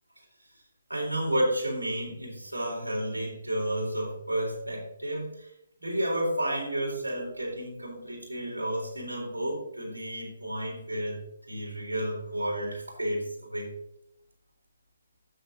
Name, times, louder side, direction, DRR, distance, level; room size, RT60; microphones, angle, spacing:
voice 1, 0.9-5.5 5.8-13.2 13.5-13.7, right 1 dB, 90° right, -2 dB, 3.9 m, -31 dB
13.0 x 6.8 x 2.7 m, 0.77 s
figure-of-eight pair, 140°, 0 cm